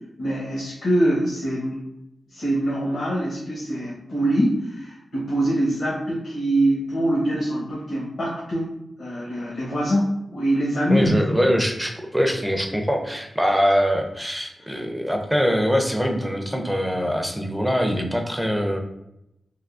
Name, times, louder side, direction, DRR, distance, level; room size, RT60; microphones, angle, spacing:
voice 1, 0.2-1.8 2.3-8.7 9.0-11.1 11.4-11.5 14.6-14.7, right 1 dB, 70° left, -7 dB, 0.9 m, -24 dB
voice 2, 10.9-18.8, equal, 5° right, 3 dB, 0.5 m, -23 dB
3.5 x 2.6 x 2.5 m, 0.84 s
wide cardioid pair, 100°, 0 cm